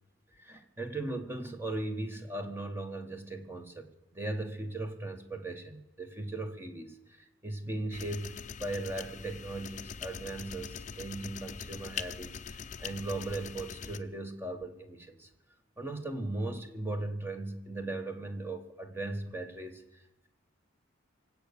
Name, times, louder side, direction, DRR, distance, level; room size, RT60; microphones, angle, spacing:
voice 1, 0.3-15.3 15.8-20.3, right 2 dB, 10° right, 6 dB, 1.3 m, -38 dB
sound 1, 7.9-14.0, left 6 dB, 35° left, 0.6 m, -42 dB
24.5 x 8.4 x 6.8 m, 0.91 s
head